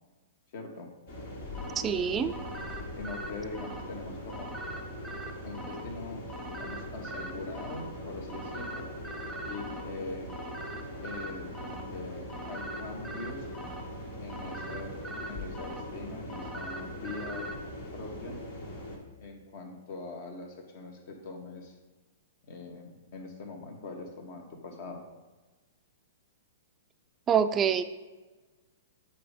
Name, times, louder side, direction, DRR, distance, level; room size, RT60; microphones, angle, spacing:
voice 1, 0.5-0.9 3.0-4.5 5.4-8.9 9.4-10.3 11.0-13.5 14.2-15.0 15.3-17.5 17.9-18.4 19.2-21.7 22.5-25.0, left 3 dB, 55° left, 3 dB, 1.5 m, -42 dB
sound 1, 1.1-19.0, left 1 dB, 70° left, 2.1 m, -41 dB
sound 2, 1.5-17.5, right 1 dB, ahead, 0.9 m, -43 dB
voice 2, 1.8-2.4 27.3-27.8, right 7 dB, 20° right, 8 dB, 0.4 m, -25 dB
8.5 x 4.4 x 5.0 m, 1.2 s
hypercardioid pair, 120°, 0 cm